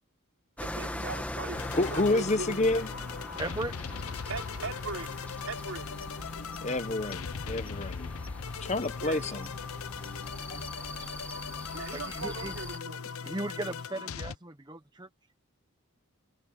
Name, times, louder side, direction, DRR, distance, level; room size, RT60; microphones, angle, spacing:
sound 1, 0.6-12.8, left 1 dB, 5° left, 1.3 m, -42 dB
voice 1, 0.6-1.6 1.9-2.6 4.3-6.0 9.0-9.4 11.7-13.0, right 3 dB, 70° right, 3.7 m, -39 dB
sound 2, 1.5-14.4, left 5 dB, 75° left, 0.7 m, -39 dB
voice 2, 1.8-2.9 6.6-8.1 8.6-9.5, left 2 dB, 30° left, 0.9 m, -29 dB
voice 3, 3.4-3.7 10.5-10.6 11.9-12.5 13.2-15.1, right 2 dB, 20° right, 0.9 m, -37 dB
head